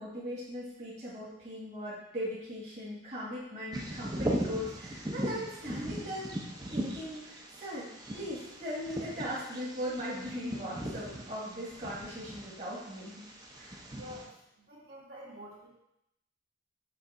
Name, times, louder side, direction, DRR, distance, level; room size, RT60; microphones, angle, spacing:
voice 1, 0.0-6.4 6.7-13.2 13.5-13.7, equal, 35° right, -8 dB, 1.8 m, -39 dB
Bird vocalization bird call bird song, 3.7-14.2, right 1 dB, 20° right, 0.8 m, -39 dB
voice 2, 13.9-14.3 14.7-15.7, equal, 55° right, -6 dB, 2.0 m, -47 dB
6.6 x 3.5 x 5.5 m, 0.82 s
head